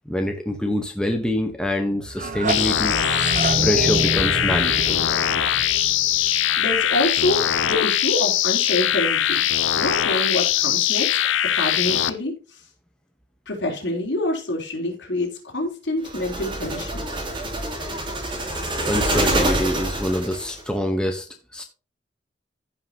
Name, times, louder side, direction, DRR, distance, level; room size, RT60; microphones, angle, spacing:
voice 1, 0.1-3.0 3.6-5.0 18.9-21.3 21.5-21.6, left 1 dB, 5° left, 3 dB, 1.1 m, -25 dB
sound 1, 2.0-6.9, right 3 dB, 40° right, 0.9 m, -27 dB
sound 2, 2.5-12.1, left 11 dB, 80° left, 0.7 m, -21 dB
voice 2, 6.6-12.6 13.5-17.0, left 1 dB, 65° left, 0 dB, 3.8 m, -27 dB
sound 3, 16.0-20.6, right 1 dB, 25° right, 2.6 m, -26 dB
15.0 x 5.6 x 2.9 m, 0.35 s
head